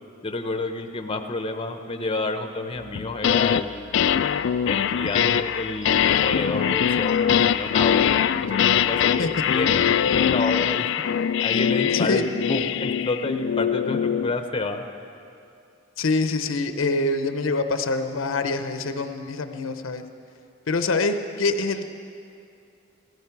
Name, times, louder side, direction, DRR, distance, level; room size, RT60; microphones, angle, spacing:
voice 1, 0.2-3.9 4.6-10.9 11.4-14.9, left 2 dB, 25° left, 6 dB, 0.7 m, -30 dB
sound 1, 3.0-3.6 3.9-14.3, left 8 dB, 65° left, 0.3 m, -22 dB
voice 2, 11.9-12.2 16.0-20.0 20.7-21.9, left 3 dB, 80° left, 8 dB, 0.7 m, -25 dB
16.5 x 14.5 x 4.6 m, 2.5 s
head